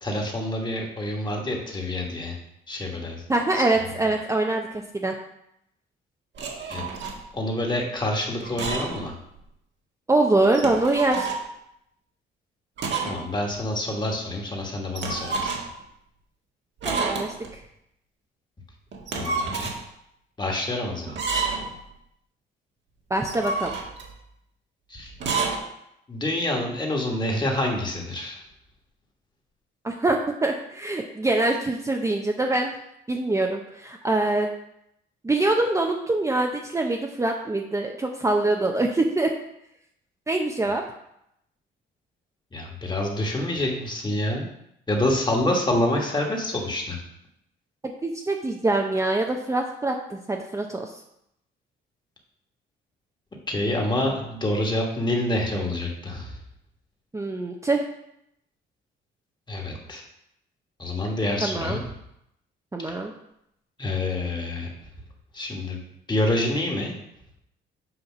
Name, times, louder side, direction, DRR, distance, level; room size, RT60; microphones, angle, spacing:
voice 1, 0.0-2.4 2.7-3.2 3.5-3.6 6.7-6.8 7.3-9.1 13.0-15.5 19.1-19.7 20.4-21.2 24.9-25.1 26.1-28.4 42.5-44.4 44.9-47.0 53.5-56.4 59.5-60.0 60.8-61.8 62.8-62.9 63.8-64.7 65.3-65.8 66.1-66.9, left 1 dB, 20° left, 0 dB, 1.6 m, -27 dB
voice 2, 3.3-5.1 10.1-11.3 16.8-17.6 23.1-23.7 29.8-32.7 33.1-34.5 35.2-39.3 40.3-40.8 47.8-51.0 57.1-57.8 61.4-61.8 62.7-63.1, right 2 dB, 15° right, 1 dB, 0.6 m, -24 dB
sound 1, 6.4-7.2 8.4-9.1 9.4-9.5 10.4-11.4 12.8-13.2 13.5-13.6 15.0-15.8 16.8-17.5 18.9-19.8 21.1-21.8 23.1-24.1 25.1-25.6, right 4 dB, 65° right, 1.4 m, -29 dB
7.9 x 2.7 x 6.0 m, 0.78 s
cardioid pair, 90°, 20 cm